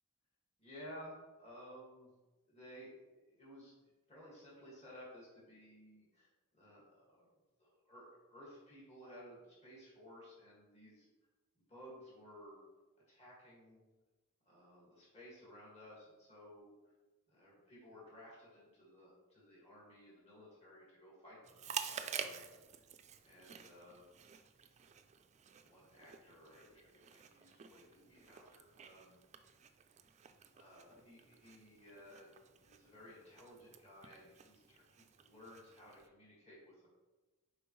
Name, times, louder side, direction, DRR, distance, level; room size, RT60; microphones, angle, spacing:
voice 1, 0.6-2.1 2.5-3.7 4.1-6.3 6.5-7.3 7.6-11.1 11.7-12.6 13.1-13.9 14.5-16.7 17.3-22.8 23.2-24.3 25.5-29.2 30.5-32.3 32.6-36.9, equal, 30° left, -6 dB, 1.9 m, -56 dB
Chewing mastication, 21.4-36.1, right 7 dB, 30° right, 0.3 m, -50 dB
6.9 x 4.7 x 3.1 m, 1.2 s
head